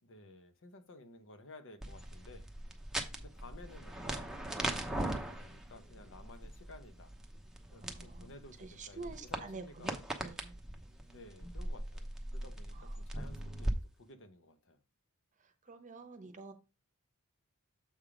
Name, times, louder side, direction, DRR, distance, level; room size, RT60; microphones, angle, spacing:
voice 1, 0.0-2.5 3.2-4.5 4.8-7.1 7.7-10.0 11.1-14.8, left 2 dB, 60° left, 0.9 m, -55 dB
sound 1, 1.8-13.7, right 1 dB, ahead, 0.8 m, -40 dB
voice 2, 7.8-8.2 8.6-10.5 12.7-12.9 15.6-16.5, right 3 dB, 35° right, 0.9 m, -48 dB
7.2 x 3.5 x 4.9 m
head